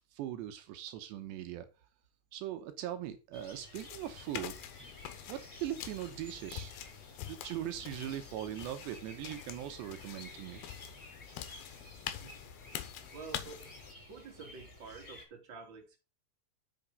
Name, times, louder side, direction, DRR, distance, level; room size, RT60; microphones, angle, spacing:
voice 1, 0.1-1.7 2.3-4.5 5.3-6.7 7.3-10.6, right 12 dB, 80° right, 3.1 m, -40 dB
sound 1, 3.3-15.2, left 1 dB, 15° left, 5.0 m, -53 dB
sound 2, 3.7-13.9, left 11 dB, 70° left, 2.7 m, -46 dB
voice 2, 12.2-12.7 13.1-13.6 13.9-16.0, right 4 dB, 30° right, 2.7 m, -49 dB
8.8 x 6.6 x 5.3 m
omnidirectional pair, 5.1 m